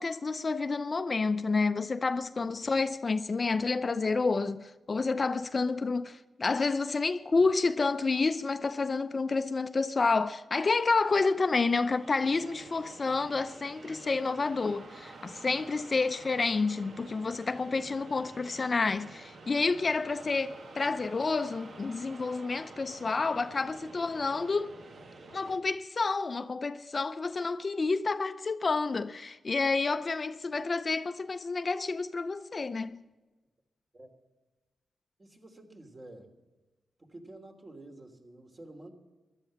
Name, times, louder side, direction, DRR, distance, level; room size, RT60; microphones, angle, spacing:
voice 1, 0.0-24.8 25.3-33.0, left 4 dB, 45° left, 0.6 m, -29 dB
sound 1, 10.8-25.6, right 3 dB, 65° right, 1.5 m, -50 dB
voice 2, 35.2-36.3 37.0-38.9, right 2 dB, 35° right, 2.8 m, -49 dB
14.0 x 11.5 x 7.3 m
cardioid pair, 65°, 0 cm